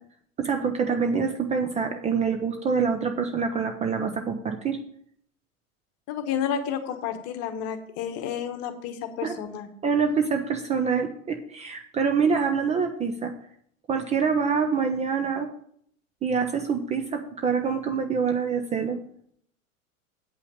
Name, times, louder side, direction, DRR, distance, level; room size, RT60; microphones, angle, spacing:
voice 1, 0.4-4.8 9.2-9.4 9.8-13.3 13.9-15.5 16.2-19.0, right 5 dB, 15° right, 5 dB, 0.6 m, -25 dB
voice 2, 6.1-9.7, left 8 dB, 35° left, 9 dB, 1.2 m, -31 dB
8.7 x 5.6 x 6.3 m, 0.65 s
figure-of-eight pair, 90°, 42 cm